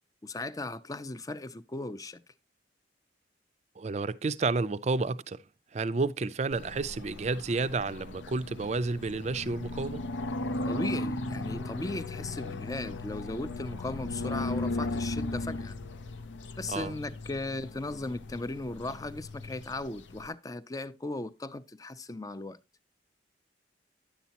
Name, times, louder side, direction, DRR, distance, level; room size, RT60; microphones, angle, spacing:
voice 1, 0.2-2.2 10.7-15.7 16.6-22.6, left 2 dB, 20° left, 0.4 m, -37 dB
voice 2, 3.8-5.4 5.7-10.0 16.7-16.9, right 3 dB, 35° right, 0.4 m, -31 dB
sound 1, 6.5-20.3, left 2 dB, 80° left, 0.6 m, -37 dB
10.0 x 8.2 x 2.9 m
head